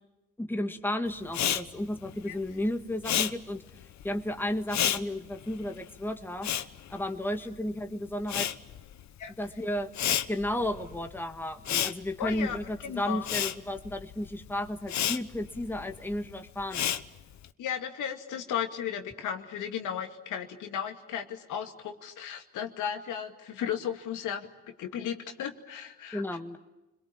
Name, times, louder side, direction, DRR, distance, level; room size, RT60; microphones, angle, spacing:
voice 1, 0.4-3.6 4.0-6.5 6.9-8.5 9.4-9.9 10.3-17.0 26.1-26.6, left 1 dB, 5° left, 6 dB, 1.6 m, -33 dB
Respiratory sounds, 1.3-7.7 8.0-17.5, left 10 dB, 65° left, 1.1 m, -32 dB
voice 2, 12.2-12.6 12.8-13.3 17.6-24.5 24.8-26.2, left 8 dB, 85° left, 5 dB, 2.3 m, -35 dB
30.0 x 22.0 x 8.7 m, 1.0 s
cardioid pair, 90°, 30 cm